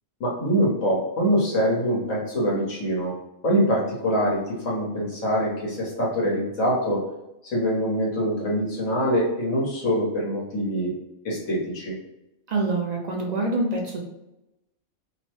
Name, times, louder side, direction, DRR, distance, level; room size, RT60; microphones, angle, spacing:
voice 1, 0.2-3.1 3.4-7.0 7.4-10.9 11.2-11.9, equal, 85° left, -4 dB, 1.5 m, -24 dB
voice 2, 12.5-14.0, right 2 dB, 55° right, -1 dB, 0.4 m, -25 dB
3.1 x 2.1 x 3.0 m, 0.92 s
omnidirectional pair, 1.3 m